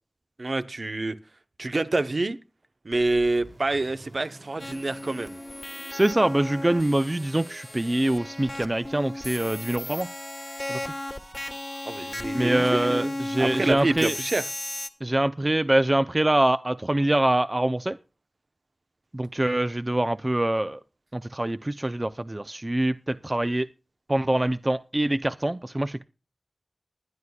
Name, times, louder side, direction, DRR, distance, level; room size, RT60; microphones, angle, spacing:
voice 1, 0.4-1.2 1.6-2.4 2.8-5.4 11.9-14.4, right 2 dB, 65° right, 0.9 m, -27 dB
sound 1, 2.9-12.8, right 2 dB, 90° right, 4.1 m, -50 dB
sound 2, 4.6-14.9, left 1 dB, 30° left, 1.2 m, -35 dB
voice 2, 5.9-10.1 10.7-10.9 12.3-14.1 15.0-18.0 19.1-20.8 21.1-23.7 24.1-26.0, right 1 dB, 30° right, 0.5 m, -24 dB
20.5 x 11.0 x 2.3 m
wide cardioid pair, 65°, 0 cm